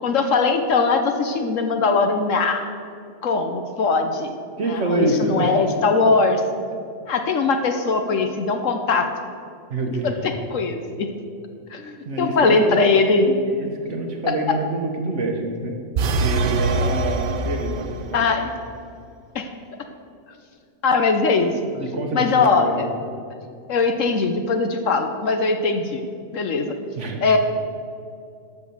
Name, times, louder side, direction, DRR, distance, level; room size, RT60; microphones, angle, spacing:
voice 1, 0.0-2.7 3.2-6.4 7.1-9.1 10.0-11.1 11.7-13.4 14.3-14.4 18.1-18.5 19.3-19.5 20.8-21.6 22.1-22.9 23.7-26.0 26.3-26.7 27.2-27.4, left 4 dB, 60° left, 6 dB, 1.0 m, -21 dB
voice 2, 4.6-5.5 9.7-10.1 12.1-12.8 13.6-15.8 16.2-17.9 21.7-22.9 27.0-27.2, right 2 dB, 50° right, 3 dB, 1.4 m, -26 dB
sound 1, 16.0-18.2, right 3 dB, 80° right, 0.4 m, -23 dB
12.0 x 6.0 x 7.1 m, 2.4 s
omnidirectional pair, 1.6 m